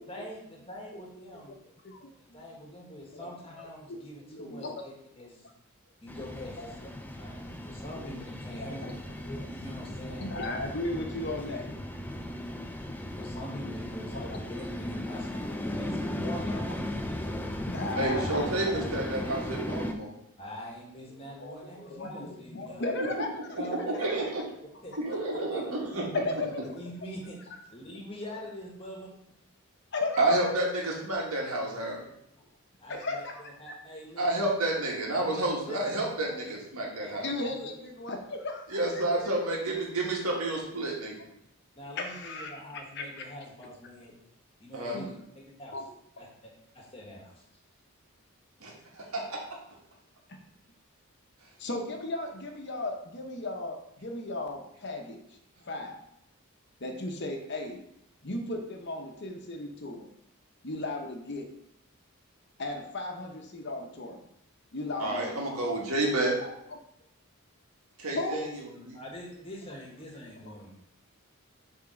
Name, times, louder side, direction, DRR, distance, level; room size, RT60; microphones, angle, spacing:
voice 1, 0.1-1.6 2.3-5.5 6.0-6.6 7.2-8.9 9.5-10.3 13.1-15.3 15.8-16.9 20.4-22.9 23.6-24.1 24.8-24.9 25.5-25.6 25.9-26.0 26.7-29.1 32.8-34.3 35.1-35.9 36.5-36.6 37.0-37.7 41.7-44.1 44.6-45.8 46.2-47.4 68.9-70.7, equal, 25° left, -1 dB, 1.4 m, -44 dB
voice 2, 1.8-2.5 3.1-3.6 3.9-4.0 4.3-4.7 6.6-6.7 7.9-8.1 8.6-9.0 9.2-9.5 10.1-11.7 14.1-14.7 15.5-15.8 16.8-16.9 17.6-18.9 21.1-23.6 25.3-25.4 26.2-26.6 29.9-30.4 32.9-33.7 37.1-39.0 39.9-40.0 42.0-43.2 44.9-45.2 45.7-45.9 51.6-55.4 55.7-56.0 56.8-57.8 58.2-60.1 60.6-61.5 62.6-64.2 64.7-65.4 66.4-66.5 68.1-68.5 70.4-70.5, left 2 dB, 50° left, 3 dB, 0.9 m, -36 dB
sound 1, 6.1-19.9, left 1 dB, 10° left, 0.4 m, -36 dB
voice 3, 18.0-20.1 23.6-24.4 25.0-26.2 30.2-32.0 34.2-37.3 38.7-41.2 44.7-45.0 48.6-49.4 65.0-66.3 68.0-68.5 68.9-69.0, right 2 dB, 85° right, -2 dB, 1.9 m, -30 dB
7.2 x 3.6 x 4.9 m, 0.76 s
head